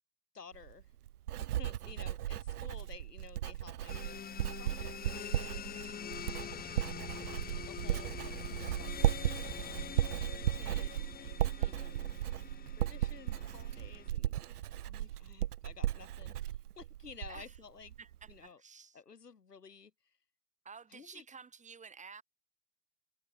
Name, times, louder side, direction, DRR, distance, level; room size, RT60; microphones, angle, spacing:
voice 1, 0.3-0.9 1.4-4.2 4.6-6.0 7.2-9.1 9.4-11.4 11.6-12.1 12.8-18.0 18.3-18.6 18.9-20.2 20.9-21.2, left 5 dB, 80° left, 3.3 m, -54 dB
Writing, 0.5-17.6 17.9-18.3, right 12 dB, 70° right, 0.7 m, -36 dB
voice 2, 1.7-2.0 11.6-12.1 17.3-17.6 18.0-19.0 20.6-22.2, right 5 dB, 15° right, 5.6 m, -53 dB
sound 1, 3.9-14.1, left 8 dB, 20° left, 2.9 m, -45 dB
figure-of-eight pair, 95°, 47 cm